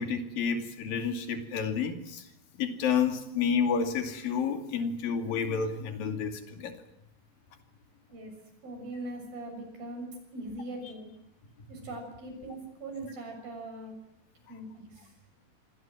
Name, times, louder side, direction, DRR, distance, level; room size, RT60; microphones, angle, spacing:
voice 1, 0.0-2.2 2.6-6.7, left 6 dB, 75° left, 7 dB, 4.2 m, -30 dB
voice 2, 8.6-10.1 10.3-11.1 11.7-13.9 14.5-15.1, right 2 dB, 80° right, 4 dB, 8.6 m, -41 dB
28.5 x 21.0 x 7.7 m, 0.80 s
omnidirectional pair, 4.1 m